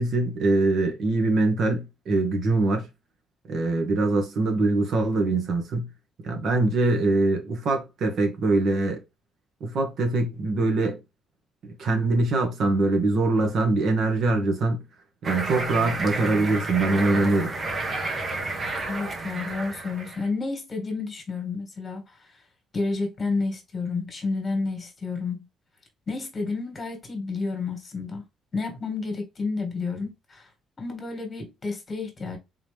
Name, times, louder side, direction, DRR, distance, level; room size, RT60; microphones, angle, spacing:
voice 1, 0.0-2.9 3.5-5.9 6.2-9.0 9.6-11.0 11.6-14.8 15.2-17.6, right 2 dB, 55° right, 1.1 m, -23 dB
sound 1, 15.2-20.3, right 2 dB, 30° right, 0.8 m, -31 dB
voice 2, 18.9-22.3 22.7-25.4 26.1-28.3 28.5-30.5 30.8-32.4, left 3 dB, 25° left, 1.6 m, -30 dB
3.8 x 3.0 x 3.3 m
cardioid pair, 135°, 0 cm